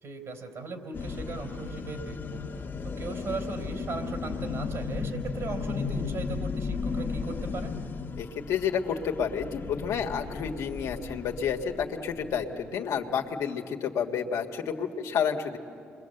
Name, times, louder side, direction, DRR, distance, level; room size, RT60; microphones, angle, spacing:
voice 1, 0.0-7.8, right 3 dB, 60° right, 4 dB, 3.6 m, -38 dB
sound 1, 0.9-12.8, left 4 dB, 45° left, 1.5 m, -35 dB
voice 2, 8.2-15.6, left 7 dB, 75° left, 2 dB, 1.7 m, -30 dB
28.5 x 22.5 x 7.9 m, 2.6 s
supercardioid pair, 65°, 5 cm